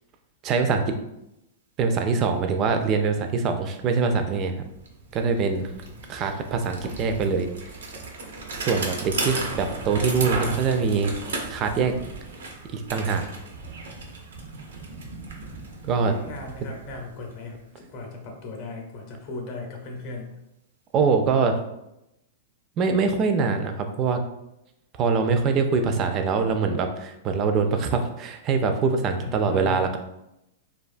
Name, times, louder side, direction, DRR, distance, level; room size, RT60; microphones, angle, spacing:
voice 1, 0.4-0.9 1.8-4.6 5.1-5.7 6.1-7.5 8.6-11.1 11.5-11.9 12.7-13.2 15.8-16.2 20.9-21.6 22.8-24.2 25.0-30.0, right 5 dB, 35° right, 6 dB, 0.3 m, -23 dB
Bicycle, 4.4-4.5 4.7-17.6, right 3 dB, 85° right, 0.5 m, -35 dB
voice 2, 5.5-6.0 16.2-20.4 29.2-29.8, left 3 dB, 45° left, 1 dB, 0.6 m, -37 dB
2.6 x 2.2 x 2.4 m, 0.87 s
hypercardioid pair, 130°, 0 cm